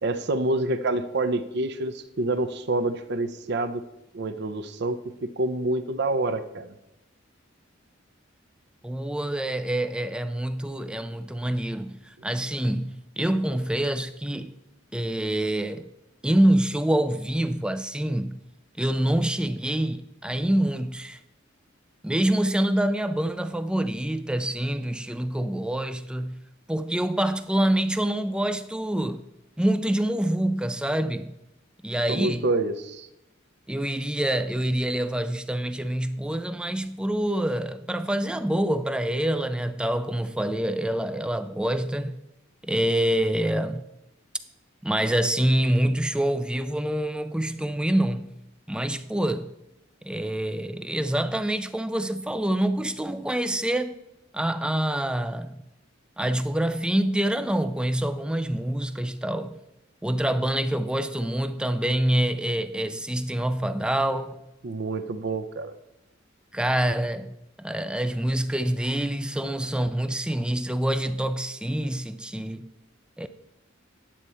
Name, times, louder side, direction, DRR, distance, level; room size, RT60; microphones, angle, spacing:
voice 1, 0.0-3.8 4.1-6.7 32.1-33.1 64.6-65.7, right 2 dB, 55° right, 0.6 m, -27 dB
voice 2, 8.8-14.6 14.9-15.9 16.2-18.4 18.8-21.2 22.0-26.4 26.7-29.3 29.6-31.3 31.8-32.4 33.7-42.2 42.6-43.8 44.8-48.4 48.7-49.5 50.0-54.0 54.3-55.6 56.2-59.6 60.0-64.4 66.5-72.7 73.2-73.3, right 1 dB, 5° right, 0.3 m, -26 dB
10.0 x 7.7 x 4.2 m
head